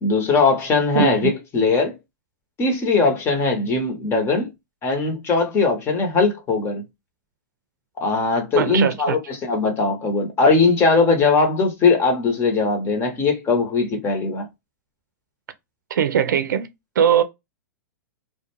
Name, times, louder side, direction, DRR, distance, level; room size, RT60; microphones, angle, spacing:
voice 1, 0.0-1.9 2.6-4.5 4.8-6.8 8.0-14.5, left 4 dB, 25° left, 0.9 m, -20 dB
voice 2, 8.6-9.2 15.9-16.7 17.0-17.2, right 8 dB, 80° right, 0.5 m, -19 dB
2.4 x 2.2 x 2.9 m
hypercardioid pair, 125°, 10 cm